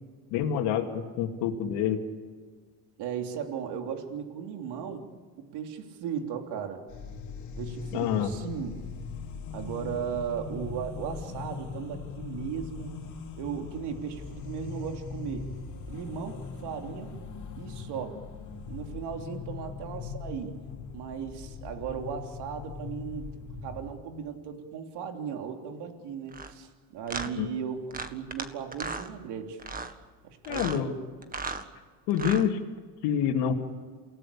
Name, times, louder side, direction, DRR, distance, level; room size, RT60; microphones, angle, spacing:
voice 1, 0.3-2.0 7.9-8.3 27.4-27.5 30.5-31.0 32.1-32.6 33.0-33.6, left 8 dB, 85° left, 1 dB, 2.7 m, -27 dB
voice 2, 3.0-5.1 5.4-6.8 7.6-8.8 9.5-12.9 13.4-15.5 15.9-17.1 17.6-18.2 18.7-20.6 20.9-23.3 23.6-29.6 30.2-30.9, right 7 dB, 70° right, 4 dB, 3.4 m, -36 dB
sound 1, 6.9-23.9, left 5 dB, 45° left, 3.4 m, -40 dB
sound 2, 26.3-26.5 27.1-27.3 27.9-28.5 28.7-29.1 29.6-29.9 30.4-30.8 31.2-31.6 32.1-32.5, right 4 dB, 20° right, 1.8 m, -35 dB
28.5 x 18.0 x 8.7 m, 1.5 s
cardioid pair, 120°, 41 cm